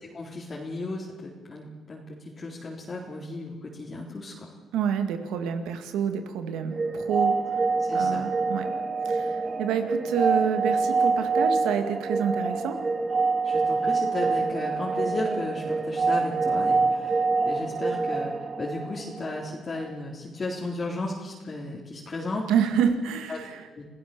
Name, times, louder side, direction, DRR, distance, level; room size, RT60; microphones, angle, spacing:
voice 1, 0.1-4.5 7.9-8.3 13.4-22.4 23.3-23.4 23.8-23.9, left 2 dB, 35° left, -4 dB, 3.9 m, -35 dB
voice 2, 4.7-7.4 7.9-8.7 9.0-12.8 22.5-23.6, right 8 dB, 90° right, 7 dB, 2.1 m, -28 dB
sound 1, 6.7-19.5, right 4 dB, 35° right, 2.6 m, -26 dB
27.5 x 15.5 x 7.0 m, 1.3 s
cardioid pair, 90°, 0 cm